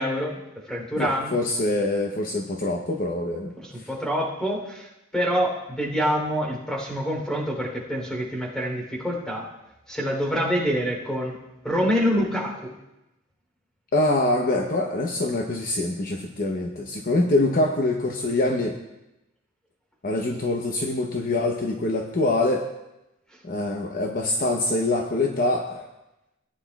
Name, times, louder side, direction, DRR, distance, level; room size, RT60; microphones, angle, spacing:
voice 1, 0.0-1.4 3.6-4.9 5.1-9.5 9.9-11.4 11.6-12.7, equal, 5° left, -2 dB, 3.3 m, -26 dB
voice 2, 1.0-3.5 13.9-18.7 20.0-22.6 23.4-25.9, left 2 dB, 45° left, 1 dB, 0.8 m, -24 dB
18.5 x 9.7 x 2.4 m, 0.94 s
head